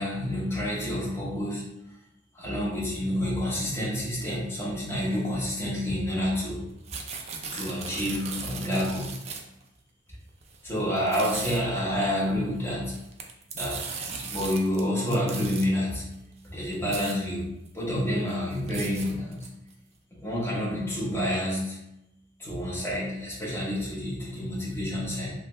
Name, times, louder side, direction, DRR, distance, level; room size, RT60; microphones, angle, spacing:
voice 1, 0.0-1.6 2.3-6.6 7.5-9.1 10.6-13.0 13.5-16.0 16.4-19.5 20.1-21.8 22.4-25.3, equal, 15° left, -6 dB, 0.9 m, -29 dB
sound 1, 6.7-9.6 10.4-10.6 11.0-11.6 12.8-14.8 15.1-15.7 16.4-16.5 16.7-17.1 17.7-17.8 18.1-19.7, right 5 dB, 35° right, 0.4 m, -37 dB
3.1 x 2.3 x 3.0 m, 0.85 s
head